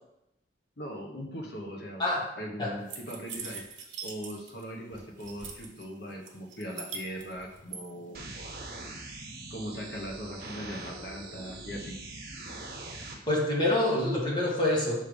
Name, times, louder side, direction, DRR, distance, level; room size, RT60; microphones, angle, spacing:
voice 1, 0.8-8.7 9.5-12.0, equal, 60° left, 0 dB, 1.1 m, -40 dB
sound 1, 2.9-4.6 4.9-5.8 6.3-7.8, right 6 dB, 90° right, 1.1 m, -41 dB
sound 2, 8.1-13.1, right 2 dB, 50° right, 1.0 m, -42 dB
voice 2, 13.3-15.0, left 1 dB, 25° left, -4 dB, 1.6 m, -26 dB
5.6 x 3.3 x 5.2 m, 0.84 s
head